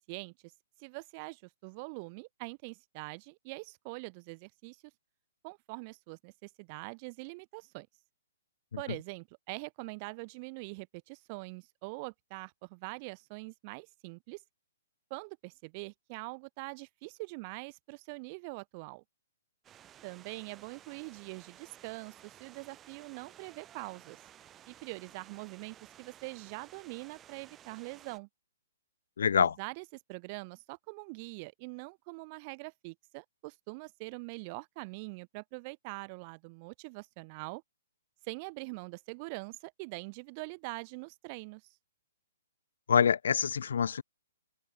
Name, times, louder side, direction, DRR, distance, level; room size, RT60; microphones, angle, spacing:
voice 1, 0.8-4.8 5.4-7.9 8.8-14.4 15.1-19.0 20.0-24.2 24.7-28.3 29.4-37.6 38.2-41.6, right 30 dB, 35° right, 2.5 m, -43 dB
sound 1, 19.6-28.2, right 11 dB, 20° right, 5.0 m, -56 dB
voice 2, 29.2-29.5 42.9-44.0, left 7 dB, 70° left, 1.6 m, -25 dB
hypercardioid pair, 135°, 0 cm